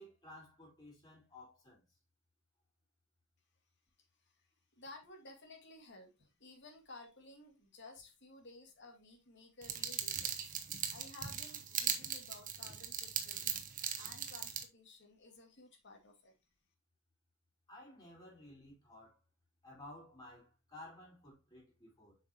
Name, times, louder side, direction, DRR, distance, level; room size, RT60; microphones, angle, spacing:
voice 1, 0.0-1.8 17.7-19.2 19.6-22.2, left 1 dB, 20° left, 4.9 m, -55 dB
voice 2, 4.8-10.6 10.9-13.6 13.9-16.3, left 2 dB, 60° left, 2.4 m, -55 dB
sound 1, 9.6-14.6, right 8 dB, 40° right, 1.2 m, -39 dB
8.0 x 5.6 x 3.0 m
head